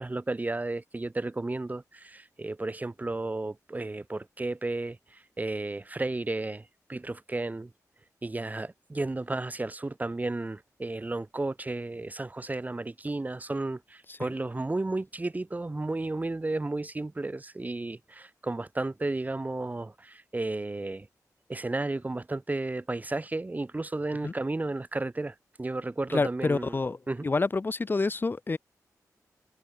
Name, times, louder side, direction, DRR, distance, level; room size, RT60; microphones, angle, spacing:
voice 1, 0.0-7.7 8.2-21.1 21.5-26.8 27.1-27.3, right 2 dB, 25° right, 1.0 m, -33 dB
voice 2, 26.1-27.0 27.2-28.6, left 3 dB, 35° left, 0.6 m, -27 dB
cardioid pair, 60°, 6 cm